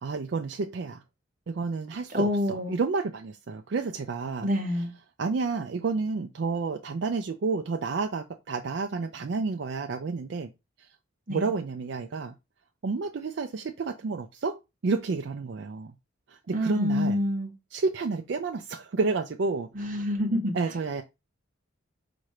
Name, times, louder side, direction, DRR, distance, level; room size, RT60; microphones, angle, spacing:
voice 1, 0.0-1.0 1.5-4.5 5.2-10.5 10.8-10.9 11.3-12.3 12.8-15.9 16.3-17.2 17.7-19.9 20.5-21.0, right 4 dB, 55° right, 0.4 m, -30 dB
voice 2, 2.1-2.8 4.4-4.9 11.3-11.5 16.5-17.5 19.7-20.5, left 1 dB, 40° right, 1.1 m, -27 dB
4.3 x 2.6 x 4.7 m
head